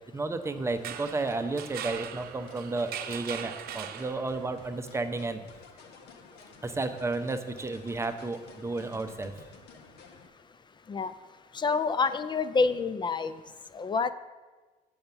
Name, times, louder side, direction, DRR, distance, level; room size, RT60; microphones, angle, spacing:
voice 1, 0.1-5.4 6.6-9.3, right 3 dB, 15° right, 8 dB, 0.6 m, -32 dB
sound 1, 0.7-10.3, left 4 dB, 75° left, 1.0 m, -52 dB
sound 2, 0.7-4.6, right 10 dB, 65° right, 0.6 m, -40 dB
voice 2, 11.6-13.3 13.7-14.1, left 4 dB, 25° left, 13 dB, 0.4 m, -27 dB
7.9 x 5.3 x 5.8 m, 1.3 s
cardioid pair, 110°, 17 cm